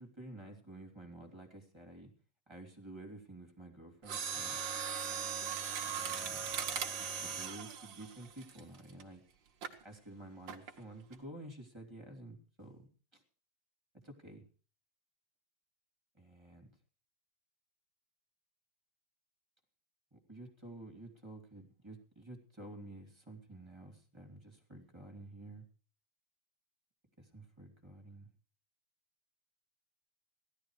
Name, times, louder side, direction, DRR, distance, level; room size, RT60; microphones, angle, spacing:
voice 1, 0.0-2.1 2.5-4.6 5.8-6.4 7.0-9.2 9.8-13.2 14.0-14.4 16.1-16.7 20.1-25.6 27.2-28.3, right 1 dB, 10° right, 2 dB, 2.2 m, -51 dB
Mechanisms, 4.0-9.0 9.6-9.8 10.5-10.8 11.1-11.2, right 7 dB, 50° right, 1.5 m, -39 dB
17.0 x 12.5 x 4.8 m, 0.38 s
omnidirectional pair, 3.8 m